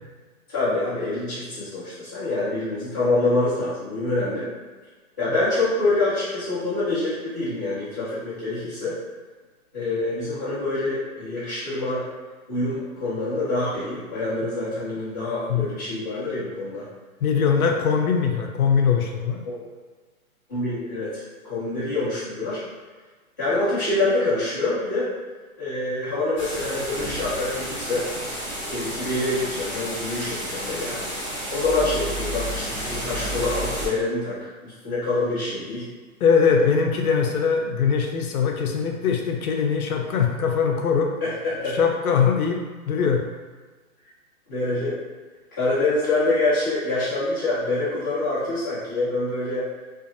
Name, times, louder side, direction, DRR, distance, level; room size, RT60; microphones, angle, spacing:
voice 1, 0.5-4.5 5.2-9.0 9.7-12.0 12.5-16.8 19.4-19.6 20.5-22.6 23.4-25.1 25.6-28.1 28.7-31.0 31.5-34.4 34.6-35.9 36.4-36.7 41.2-41.8 44.5-44.9 45.5-49.7, left 2 dB, 15° left, -16 dB, 0.6 m, -26 dB
voice 2, 17.2-19.4 36.2-41.1 41.7-42.6 42.9-43.2, left 6 dB, 80° left, 2 dB, 0.6 m, -21 dB
sound 1, 26.4-33.9, right 1 dB, 10° right, 1.3 m, -31 dB
2.5 x 2.4 x 2.6 m, 1.3 s
hypercardioid pair, 175°, 43 cm